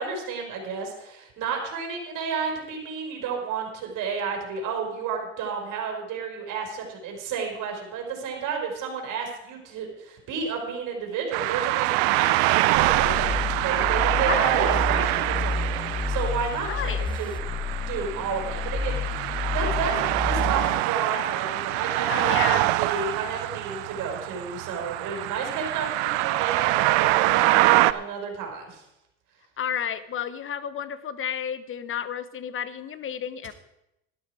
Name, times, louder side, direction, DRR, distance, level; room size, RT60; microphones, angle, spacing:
voice 1, 0.0-17.3 17.8-28.8, right 5 dB, 60° right, 2 dB, 4.8 m, -32 dB
sound 1, 11.3-27.9, right 19 dB, 80° right, 0.6 m, -25 dB
sound 2, 12.7-20.8, left 4 dB, 15° left, 0.9 m, -30 dB
voice 2, 14.2-14.8 16.7-17.0 22.1-22.7 29.6-33.5, left 9 dB, 40° left, 14 dB, 1.0 m, -31 dB
12.5 x 12.0 x 4.9 m, 0.85 s
supercardioid pair, 100°, 34 cm